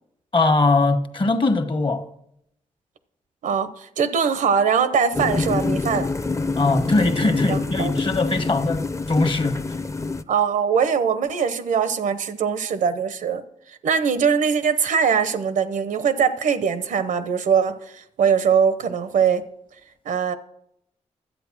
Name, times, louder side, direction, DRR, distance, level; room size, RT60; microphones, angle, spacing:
voice 1, 0.3-2.1 6.6-9.6, left 3 dB, 40° left, 1.3 m, -21 dB
voice 2, 3.4-6.1 7.5-7.9 10.3-13.4 13.8-19.4 20.0-20.4, right 6 dB, 85° right, 0.9 m, -21 dB
sound 1, 5.1-10.2, left 3 dB, 25° left, 0.7 m, -26 dB
11.5 x 8.3 x 6.1 m
cardioid pair, 65°, 13 cm